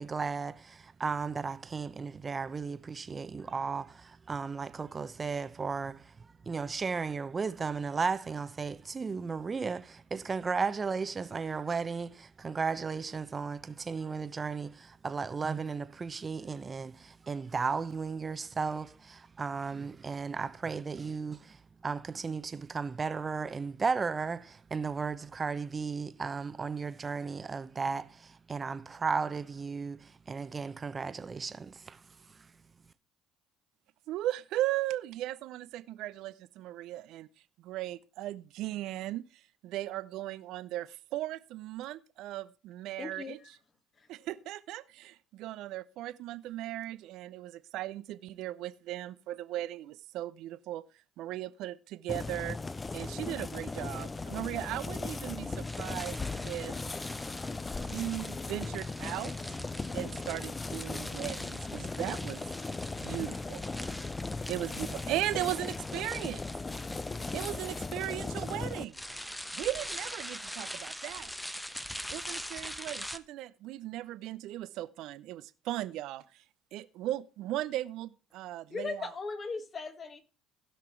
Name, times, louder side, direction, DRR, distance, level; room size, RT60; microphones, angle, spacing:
voice 1, 0.0-6.1 6.5-21.6 21.8-32.0, right 5 dB, 30° right, 0.9 m, -35 dB
voice 2, 34.1-37.3 37.6-43.4 44.1-50.8 51.2-52.6 52.9-56.7 57.8-59.3 59.9-62.4 63.0-63.6 64.5-66.4 67.3-69.0 69.5-71.3 72.1-76.4 76.7-79.1, right 14 dB, 65° right, 0.6 m, -37 dB
voice 3, 43.0-43.5 44.0-44.1 78.7-80.2, left 4 dB, 40° left, 1.8 m, -38 dB
sound 1, 52.1-68.8, left 3 dB, 20° left, 0.7 m, -38 dB
sound 2, 55.6-73.2, equal, 5° left, 0.9 m, -44 dB
16.0 x 5.9 x 4.5 m
hypercardioid pair, 70°, 0 cm